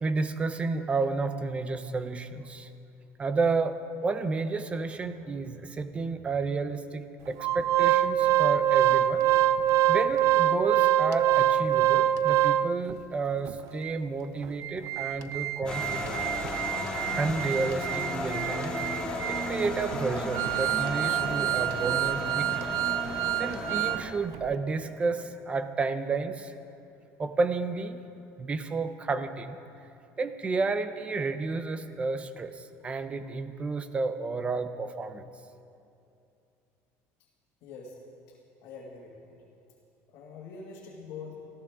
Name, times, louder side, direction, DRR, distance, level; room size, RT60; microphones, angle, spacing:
voice 1, 0.0-2.7 3.2-9.3 9.9-16.2 17.2-18.8 19.3-22.7 23.4-26.5 27.2-28.0 28.4-29.6 30.2-32.5 32.8-35.3, right 4 dB, 20° right, 10 dB, 0.8 m, -31 dB
Organ, 7.4-12.9 13.5-13.6 13.8-14.0 14.4-24.0 24.3-24.5, right 12 dB, 55° right, 0.4 m, -26 dB
sound 1, 15.6-24.0, left 1 dB, 15° left, 2.2 m, -34 dB
voice 2, 37.6-38.0 38.6-39.4 40.1-41.4, left 5 dB, 60° left, -3 dB, 2.2 m, -44 dB
26.5 x 14.5 x 3.7 m, 2.7 s
cardioid pair, 165°, 6 cm